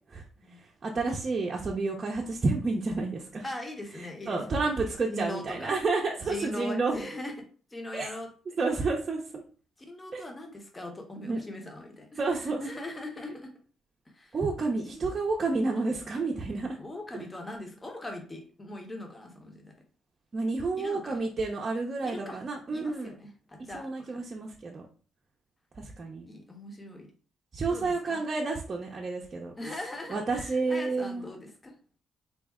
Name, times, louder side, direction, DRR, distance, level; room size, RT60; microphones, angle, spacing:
voice 1, 0.5-3.4 4.0-6.9 7.9-8.1 8.6-9.4 10.1-10.2 11.3-11.4 12.2-12.6 14.3-16.8 20.3-23.1 23.7-24.8 25.8-26.3 27.5-29.5 30.1-31.3, right 3 dB, 35° right, -2 dB, 0.6 m, -30 dB
voice 2, 3.4-4.7 5.1-5.7 6.2-7.3 7.7-8.3 9.9-13.5 14.1-14.4 14.8-15.1 16.7-19.7 20.8-21.2 22.0-22.4 22.7-24.2 26.3-27.1 27.7-28.2 29.6-31.7, left 1 dB, 20° left, 3 dB, 0.9 m, -40 dB
4.1 x 2.0 x 3.5 m, 0.40 s
cardioid pair, 90°, 0 cm